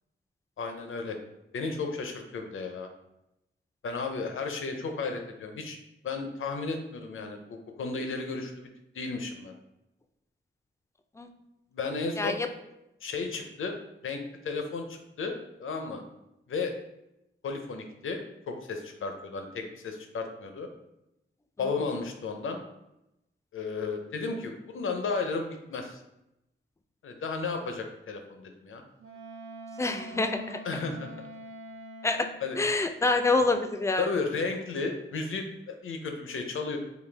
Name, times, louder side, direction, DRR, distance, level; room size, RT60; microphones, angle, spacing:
voice 1, 0.6-1.2 1.5-2.9 3.8-5.8 6.0-8.7 8.9-9.5 11.7-12.4 13.0-13.7 14.0-15.3 15.6-16.0 16.5-16.7 17.4-20.7 21.6-22.6 23.5-26.0 27.0-28.8 30.6-31.1 32.4-32.6 34.0-36.8, left 4 dB, 80° left, 5 dB, 0.6 m, -33 dB
voice 2, 12.2-12.5 29.8-30.6 32.0-32.3 32.6-34.1, left 3 dB, 15° left, 6 dB, 0.3 m, -26 dB
Wind instrument woodwind instrument, 29.0-32.4, equal, 90° right, 1.0 m, -44 dB
4.1 x 2.7 x 3.3 m, 0.88 s
wide cardioid pair, 95°, 20 cm